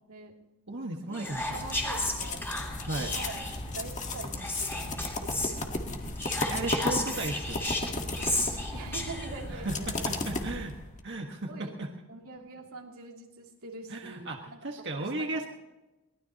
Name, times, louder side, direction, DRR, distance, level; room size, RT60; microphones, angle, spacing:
voice 1, 0.1-0.4 1.1-2.5 3.1-6.0 8.7-10.4 11.5-11.8 12.1-14.7 15.0-15.5, right 3 dB, 90° right, 0 dB, 2.9 m, -44 dB
voice 2, 0.7-1.6 2.8-3.1 6.5-7.6 9.6-10.7 11.0-11.9 13.9-14.4 14.6-15.5, right 2 dB, 55° right, 1 dB, 1.6 m, -35 dB
Whispering, 1.1-3.7 4.4-5.5 6.2-9.4, left 1 dB, 10° left, 3.0 m, -34 dB
sound 1, 1.3-11.0, left 2 dB, 35° left, 1.7 m, -35 dB
23.0 x 19.0 x 3.0 m, 1.1 s
head